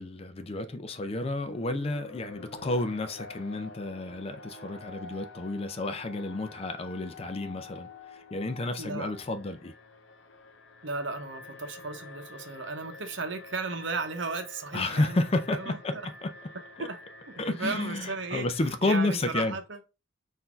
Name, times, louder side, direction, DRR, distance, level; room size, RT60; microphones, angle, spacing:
voice 1, 0.0-9.7 14.7-15.9 16.2-16.3 16.8-16.9 17.4-19.6, left 2 dB, 30° left, 0.4 m, -31 dB
Alarm, 0.7-18.6, left 3 dB, 65° left, 0.7 m, -48 dB
voice 2, 8.8-9.1 10.8-16.1 16.8-17.0 17.3-18.5 18.8-19.8, right 3 dB, 65° right, 0.8 m, -35 dB
4.1 x 2.7 x 4.3 m
head